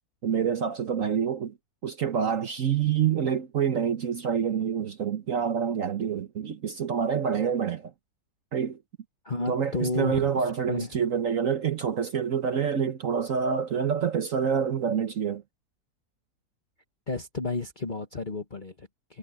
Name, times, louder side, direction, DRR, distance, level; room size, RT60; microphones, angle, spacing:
voice 1, 0.2-1.5 1.8-7.9 8.5-8.8 9.5-15.4, right 7 dB, 55° right, 1.3 m, -27 dB
voice 2, 9.2-11.0 17.1-19.2, left 3 dB, 30° left, 1.7 m, -32 dB
omnidirectional pair, 1.7 m